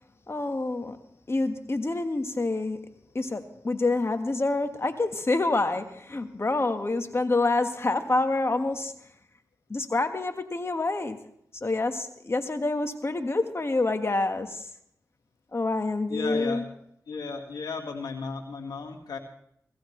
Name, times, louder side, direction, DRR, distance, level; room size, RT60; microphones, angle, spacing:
voice 1, 0.3-1.0 1.3-2.9 3.1-8.9 9.7-11.2 11.6-14.6 15.5-16.6, left 2 dB, 40° left, 8 dB, 1.4 m, -27 dB
voice 2, 16.1-16.7 17.1-19.2, left 4 dB, 90° left, 4 dB, 1.7 m, -35 dB
17.5 x 15.5 x 3.2 m, 0.70 s
cardioid pair, 40°, 7 cm